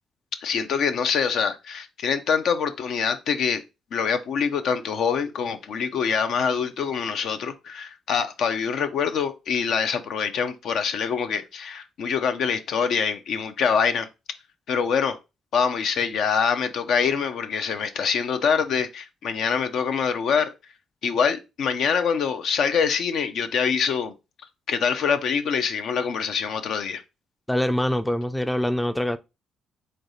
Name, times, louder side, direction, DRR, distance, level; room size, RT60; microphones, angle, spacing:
voice 1, 0.4-3.6 3.9-14.1 14.7-15.2 15.5-20.5 21.0-24.1 24.7-27.0, left 6 dB, 70° left, 0.6 m, -25 dB
voice 2, 27.5-29.2, left 1 dB, 5° left, 0.4 m, -24 dB
3.9 x 3.3 x 4.0 m
cardioid pair, 90°, 0 cm